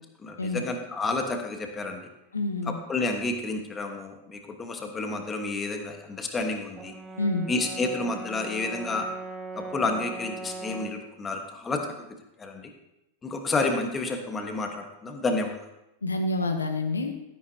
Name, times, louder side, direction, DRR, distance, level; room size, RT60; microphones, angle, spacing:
voice 1, 0.2-2.1 2.7-7.0 7.5-9.1 9.5-11.9 12.4-12.7 13.2-15.7, left 3 dB, 20° left, 5 dB, 1.3 m, -30 dB
voice 2, 2.3-2.8 7.2-7.5 16.0-17.1, left 2 dB, 75° left, 5 dB, 0.9 m, -27 dB
Brass instrument, 6.8-11.1, right 3 dB, 20° right, 1.1 m, -39 dB
12.5 x 10.5 x 2.8 m, 0.90 s
figure-of-eight pair, 90°, 0 cm